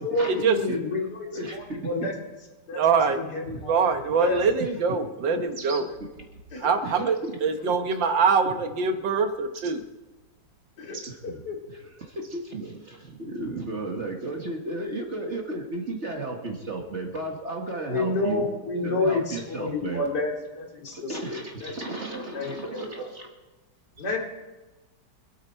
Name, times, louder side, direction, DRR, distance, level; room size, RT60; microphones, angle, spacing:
voice 1, 0.0-1.2 1.5-2.1 2.7-2.8 3.2-3.8 4.2-4.4 6.5-6.7 10.8-11.6 17.9-21.7 22.1-22.6 24.0-24.2, left 2 dB, 65° left, 1 dB, 3.1 m, -29 dB
voice 2, 1.3-2.1 3.5-3.6 4.6-4.7 6.8-7.7 11.1-18.5 18.8-20.0 20.9-23.3 24.0-24.2, right 2 dB, 40° right, 1 dB, 1.9 m, -34 dB
voice 3, 2.8-3.2 3.7-5.9 6.6-9.8, right 5 dB, 85° right, 7 dB, 1.9 m, -23 dB
sound 1, 5.5-6.0 7.1-7.3 7.9-8.4 9.5-9.7 10.9-11.2 12.2-12.4, right 3 dB, 60° right, 2.0 m, -43 dB
26.0 x 9.0 x 4.5 m, 1.1 s
omnidirectional pair, 2.0 m